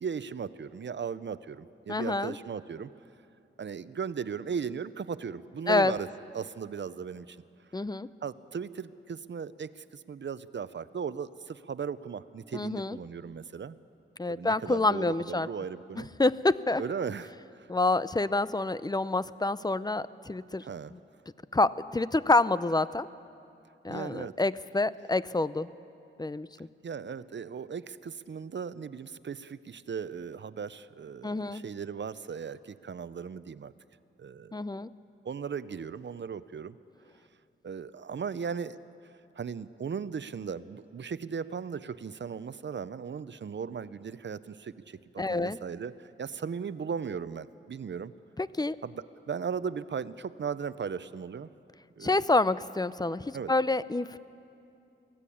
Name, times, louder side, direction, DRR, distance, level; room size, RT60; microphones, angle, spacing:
voice 1, 0.0-2.9 3.6-6.1 6.3-7.4 8.2-13.8 14.3-16.1 16.7-17.7 20.6-20.9 23.9-24.3 26.8-33.7 34.2-34.5 35.2-36.8 37.6-38.8 39.4-48.1 48.8-51.5 52.0-52.3 53.3-53.5, right 6 dB, 60° right, 15 dB, 0.6 m, -37 dB
voice 2, 1.9-2.4 5.7-5.9 7.7-8.1 12.5-13.0 14.2-15.5 16.2-16.8 17.7-20.6 21.5-23.1 23.8-25.7 26.2-26.5 31.2-31.6 34.5-34.9 45.2-45.6 48.4-48.8 52.0-54.2, left 2 dB, 20° left, 16 dB, 0.5 m, -27 dB
24.0 x 16.0 x 8.6 m, 2.6 s
wide cardioid pair, 75°, 21 cm